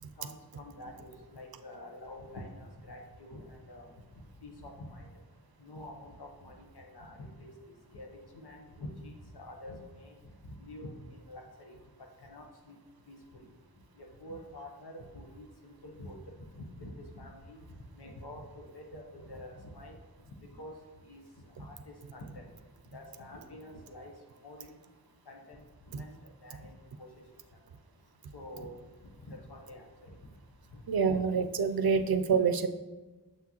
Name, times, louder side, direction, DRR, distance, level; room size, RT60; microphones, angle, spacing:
voice 1, 0.2-3.9 4.4-5.1 5.6-7.5 7.9-12.8 13.1-13.4 14.0-20.0 20.5-20.7 21.0-21.2 21.6-22.4 22.9-24.1 24.4-24.8 25.3-27.1 27.5-27.6 28.3-28.8 29.2-30.2, left 1 dB, 90° left, 1 dB, 1.0 m, -47 dB
voice 2, 30.9-32.7, right 5 dB, 70° right, 10 dB, 0.5 m, -27 dB
6.8 x 5.9 x 3.0 m, 1.2 s
wide cardioid pair, 45°, 38 cm